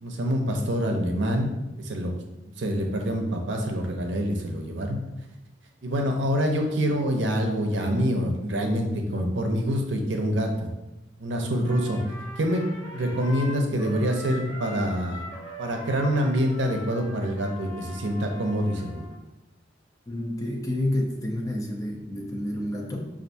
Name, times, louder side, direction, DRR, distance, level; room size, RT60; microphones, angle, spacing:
voice 1, 0.0-1.5 1.8-2.1 2.6-5.0 5.8-10.7 11.2-12.0 12.4-12.6 12.9-15.2 15.6-19.0, equal, 75° right, 3 dB, 0.6 m, -26 dB
Trumpet, 11.6-19.2, left 1 dB, 65° left, 1.0 m, -42 dB
voice 2, 20.1-23.0, left 1 dB, 20° left, 0 dB, 0.5 m, -29 dB
5.4 x 2.5 x 2.6 m, 0.97 s
head